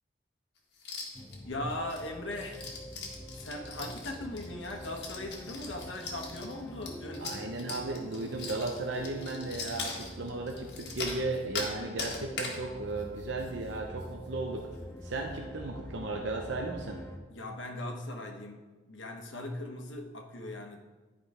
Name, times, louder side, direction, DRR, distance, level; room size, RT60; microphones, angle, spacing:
sound 1, 0.8-1.4 1.7-11.7 12.0-12.6 13.0-13.1 13.4-13.7 14.0-14.1 14.6-14.8, left 4 dB, 60° left, 1.7 m, -40 dB
Rogue Planet (mystery ambient), 1.1-17.2, equal, 15° left, 0.6 m, -46 dB
voice 1, 1.4-2.9 3.4-7.4 17.3-20.8, left 1 dB, 85° left, 2 dB, 1.2 m, -39 dB
voice 2, 7.2-14.7 15.0-17.0, right 2 dB, 80° right, 2 dB, 0.8 m, -35 dB
11.0 x 4.9 x 4.9 m, 1.3 s
head